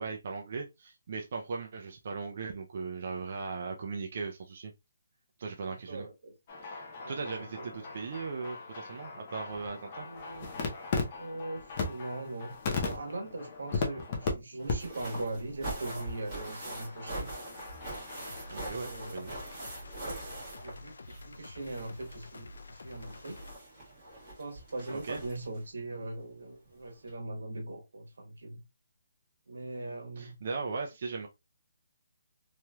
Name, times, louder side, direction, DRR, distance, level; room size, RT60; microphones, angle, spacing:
voice 1, 0.0-4.7 5.4-6.1 6.6-6.8 7.1-10.1 18.5-19.4 24.9-25.2 30.2-31.3, right 4 dB, 35° right, 0.4 m, -38 dB
voice 2, 5.6-6.4 7.0-7.7 10.0-10.5 11.2-17.3 18.5-19.2 20.3-23.4 24.4-28.6 29.5-30.4, right 2 dB, 80° right, 1.1 m, -41 dB
sound 1, 6.5-14.3 14.7-14.8 15.0-15.3 15.7-18.5, left 4 dB, 25° left, 0.6 m, -38 dB
sound 2, 14.6-21.4 21.6-25.6 26.7-26.8 27.1-27.2, right 1 dB, 15° right, 1.4 m, -43 dB
sound 3, 18.2-23.6, left 3 dB, 80° left, 0.4 m, -49 dB
3.1 x 2.8 x 2.2 m
hypercardioid pair, 175°, 0 cm